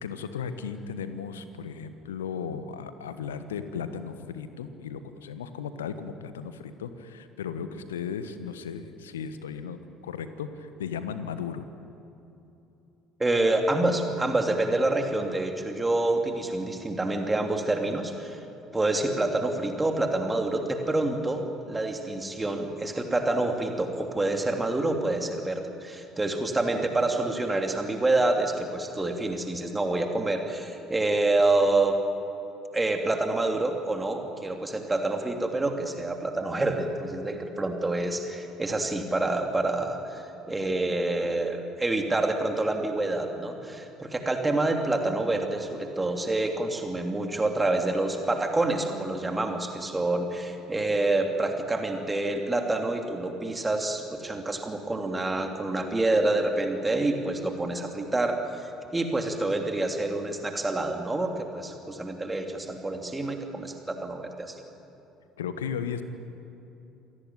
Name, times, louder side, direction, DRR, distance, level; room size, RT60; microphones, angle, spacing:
voice 1, 0.0-9.8 10.0-11.7 65.4-66.0, left 7 dB, 75° left, 11 dB, 1.3 m, -35 dB
voice 2, 13.2-18.4 18.7-21.4 21.7-32.0 32.7-58.4 58.9-64.6, right 2 dB, 15° right, 4 dB, 3.0 m, -27 dB
27.5 x 17.5 x 9.3 m, 2.9 s
figure-of-eight pair, 55°, 0 cm